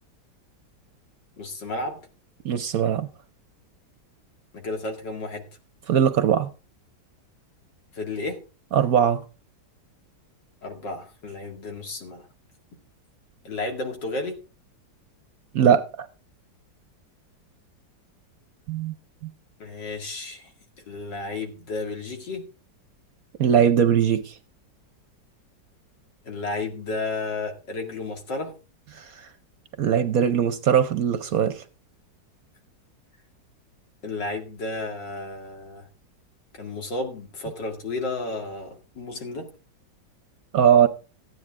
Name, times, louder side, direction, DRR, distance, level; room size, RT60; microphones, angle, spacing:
voice 1, 1.4-2.0 4.5-5.4 7.9-8.4 10.6-12.3 13.4-14.4 19.6-20.5 20.9-22.4 26.2-28.5 34.0-35.9 36.6-39.5, left 3 dB, 75° left, 2.8 m, -32 dB
voice 2, 2.4-3.1 5.9-6.5 8.7-9.2 15.5-16.1 18.7-18.9 19.2-19.3 23.4-24.4 28.9-29.3 29.8-31.6 40.5-40.9, right 8 dB, 65° right, 1.0 m, -20 dB
14.5 x 9.5 x 3.6 m
omnidirectional pair, 2.0 m